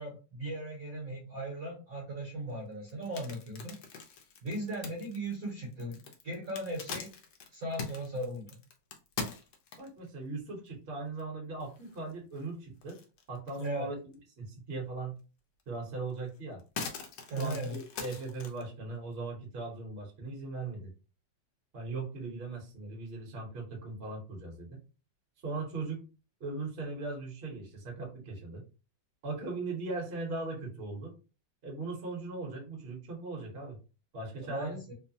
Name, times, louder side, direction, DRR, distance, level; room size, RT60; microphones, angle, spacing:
voice 1, 0.0-3.7 4.4-7.1 7.5-8.6 13.6-13.9 17.3-17.8 34.4-34.9, right 1 dB, 55° right, -1 dB, 1.1 m, -38 dB
sound 1, 2.9-10.1 10.7-10.8 11.2-11.3 11.6-12.4 12.8-13.8 14.1-14.2 15.6-15.7 16.1-18.6, left 5 dB, 70° left, 1.0 m, -42 dB
voice 2, 9.8-13.0 13.3-14.0 14.4-15.1 15.7-16.6 17.4-20.9 21.7-24.8 25.4-26.0 26.4-28.6 29.2-31.1 31.6-33.8 34.1-34.8, right 3 dB, 40° right, 0 dB, 0.9 m, -39 dB
3.1 x 2.1 x 2.6 m, 0.33 s
omnidirectional pair, 2.0 m